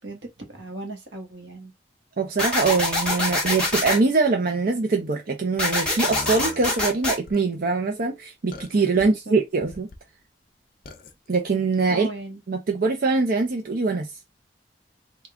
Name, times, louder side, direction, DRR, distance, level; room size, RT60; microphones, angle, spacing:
voice 1, 0.0-1.7 8.9-9.4 11.9-12.4, right 2 dB, 85° right, 1.2 m, -37 dB
voice 2, 2.2-9.9 11.3-12.1 12.5-14.1, right 4 dB, 55° right, 0.6 m, -23 dB
sound 1, 2.4-4.0 5.6-7.2, left 2 dB, 5° left, 1.2 m, -24 dB
sound 2, 6.1-7.4 8.5-9.1 9.6-10.0 10.9-11.1, left 4 dB, 55° left, 0.6 m, -39 dB
3.6 x 2.3 x 3.3 m
head